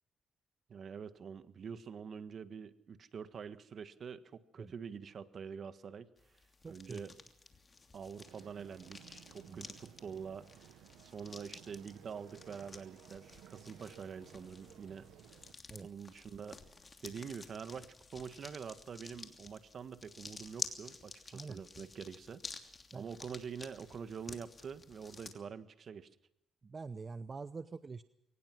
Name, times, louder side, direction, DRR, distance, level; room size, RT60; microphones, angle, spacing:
voice 1, 0.7-6.1 6.6-7.1 7.9-10.7 11.0-15.1 15.8-16.6 17.0-22.4 22.9-26.1, right 6 dB, 50° right, 12 dB, 1.5 m, -46 dB
sound 1, 6.2-25.3, left 4 dB, 30° left, 2.9 m, -51 dB
voice 2, 6.6-7.1 9.5-9.7 15.7-15.9 21.3-21.6 22.9-23.0 26.6-28.0, right 4 dB, 35° right, 13 dB, 0.8 m, -45 dB
sound 2, 8.3-15.5, right 12 dB, 90° right, 0.9 m, -58 dB
23.0 x 19.0 x 6.1 m, 0.87 s
cardioid pair, 90°, 0 cm